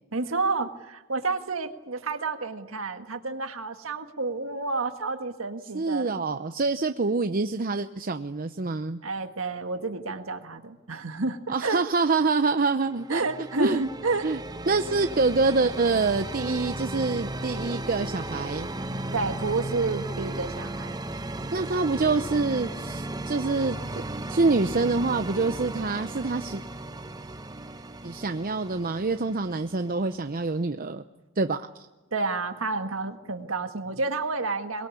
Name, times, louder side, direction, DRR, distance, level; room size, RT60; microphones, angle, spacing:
voice 1, 0.1-6.1 9.0-11.8 13.1-14.3 19.1-21.0 32.1-34.9, right 3 dB, 80° right, 7 dB, 1.7 m, -30 dB
voice 2, 5.7-9.0 11.5-13.2 13.6-13.8 14.2-14.4 14.7-18.7 21.5-24.0 24.3-26.6 28.0-31.0 31.4-31.7, right 3 dB, 45° right, 8 dB, 0.8 m, -26 dB
sound 1, 12.9-30.6, right 2 dB, 20° right, 0.9 m, -36 dB
23.0 x 22.0 x 8.5 m, 1.1 s
head